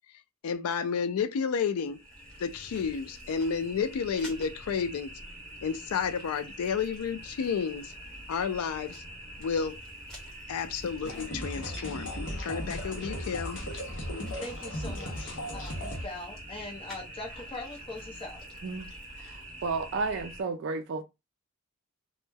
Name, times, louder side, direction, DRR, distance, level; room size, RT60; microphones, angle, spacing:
voice 1, 0.4-2.0 2.4-5.2 5.6-7.9 8.3-9.0 9.4-9.8 10.5-12.1 12.4-13.6, left 6 dB, 90° left, 0.4 m, -31 dB
sound 1, 1.8-20.4, right 1 dB, 5° left, 0.9 m, -45 dB
sound 2, 11.0-16.1, left 1 dB, 60° left, 0.7 m, -36 dB
voice 2, 14.4-18.4, left 2 dB, 25° left, 0.7 m, -41 dB
voice 3, 19.2-21.0, right 4 dB, 55° right, 0.3 m, -32 dB
2.1 x 2.1 x 3.2 m
head